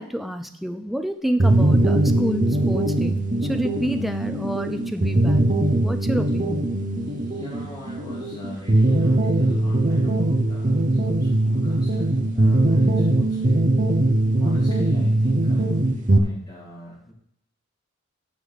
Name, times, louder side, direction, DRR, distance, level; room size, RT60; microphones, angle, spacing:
voice 1, 0.0-5.5 5.8-6.7, right 1 dB, ahead, 6 dB, 0.5 m, -29 dB
sound 1, 1.4-16.2, right 1 dB, 35° right, 0.8 m, -21 dB
voice 2, 7.0-13.6 14.4-17.1, equal, 15° left, -11 dB, 2.6 m, -41 dB
15.0 x 5.1 x 4.1 m, 0.70 s
head